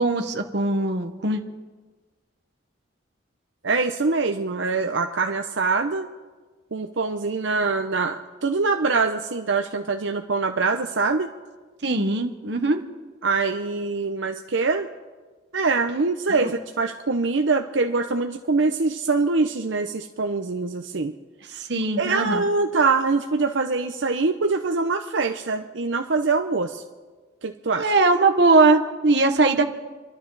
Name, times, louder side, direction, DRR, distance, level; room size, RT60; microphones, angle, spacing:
voice 1, 0.0-1.4 11.8-12.8 16.4-16.5 21.6-22.4 27.8-29.6, right 3 dB, 65° right, 5 dB, 1.3 m, -20 dB
voice 2, 3.6-6.1 6.7-11.3 13.2-14.9 15.5-21.1 21.5-21.6 22.0-26.8 27.4-27.9, right 4 dB, 80° right, 5 dB, 0.8 m, -24 dB
29.5 x 12.0 x 4.1 m, 1.4 s
head